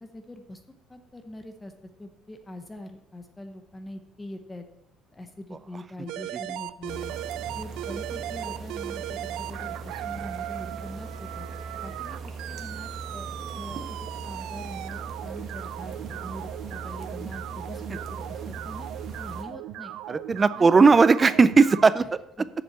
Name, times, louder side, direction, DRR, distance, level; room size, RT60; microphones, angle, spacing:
voice 1, 0.0-4.7 5.1-7.1 7.6-11.5 11.8-13.3 13.6-18.9 19.2-20.0 20.6-20.8 22.4-22.5, left 1 dB, 10° left, 7 dB, 0.8 m, -43 dB
sound 1, 6.1-21.8, right 13 dB, 80° right, 0.5 m, -38 dB
sound 2, 6.9-19.4, right 4 dB, 45° right, 1.3 m, -39 dB
voice 2, 20.1-22.2, right 4 dB, 20° right, 16 dB, 0.3 m, -17 dB
7.3 x 7.1 x 8.0 m, 0.83 s
cardioid pair, 165°, 0 cm